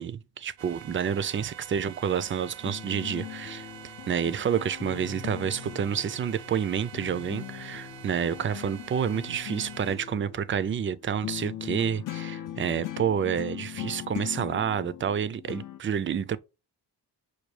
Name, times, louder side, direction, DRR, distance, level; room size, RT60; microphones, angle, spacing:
voice 1, 0.0-16.4, right 8 dB, 30° right, 0.4 m, -29 dB
sound 1, 0.6-10.0, right 11 dB, 85° right, 0.6 m, -46 dB
sound 2, 2.1-6.7 6.9-15.8, left 12 dB, 50° left, 0.5 m, -40 dB
6.2 x 2.3 x 3.2 m
cardioid pair, 85°, 42 cm